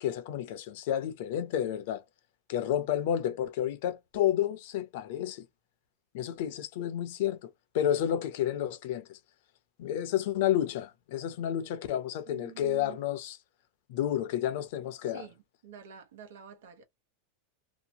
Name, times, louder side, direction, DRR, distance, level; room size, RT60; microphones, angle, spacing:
voice 1, 0.0-2.0 2.5-5.5 6.1-7.5 7.7-9.2 9.8-13.4 13.9-15.3, left 11 dB, 65° left, 0.7 m, -30 dB
voice 2, 12.3-13.0 15.1-16.8, right 8 dB, 85° right, 1.0 m, -48 dB
2.8 x 2.2 x 2.8 m
supercardioid pair, 150°, 0 cm